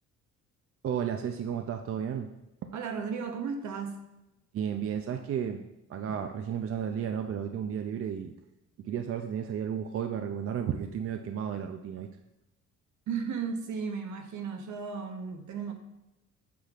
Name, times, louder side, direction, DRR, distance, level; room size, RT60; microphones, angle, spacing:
voice 1, 0.8-2.3 4.5-5.6 5.9-8.3 8.8-12.1, right 8 dB, 50° right, 6 dB, 0.5 m, -33 dB
voice 2, 2.7-4.0 13.1-15.7, right 6 dB, 70° right, 5 dB, 1.0 m, -35 dB
8.4 x 5.8 x 2.4 m, 0.93 s
cardioid pair, 90°, 30 cm